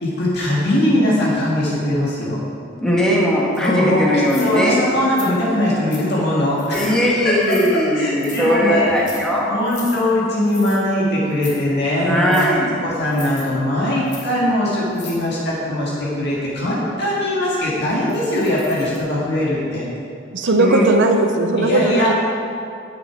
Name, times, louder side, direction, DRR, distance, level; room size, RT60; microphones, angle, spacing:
voice 1, 0.0-2.4 3.6-4.1 4.4-7.0 7.2-8.9 9.5-19.8 21.6-22.1, left 1 dB, 60° left, -6 dB, 1.8 m, -21 dB
voice 2, 2.8-4.8 6.7-9.6 12.0-12.7 20.6-20.9, equal, 5° left, -4 dB, 1.5 m, -18 dB
sound 1, 3.6-3.7 4.3-4.7 5.2-5.3 5.9-6.1 6.6-7.0 7.4-7.7 8.2-8.5 8.9-9.2 9.7-10.0 10.5-10.8 11.3-11.6 12.3-12.5 13.1-13.4 14.1-14.3 14.9-15.2 18.1-19.0, left 5 dB, 40° left, 1.3 m, -37 dB
voice 3, 20.3-22.1, right 2 dB, 65° right, 4 dB, 0.7 m, -17 dB
9.1 x 6.9 x 4.7 m, 2.4 s
head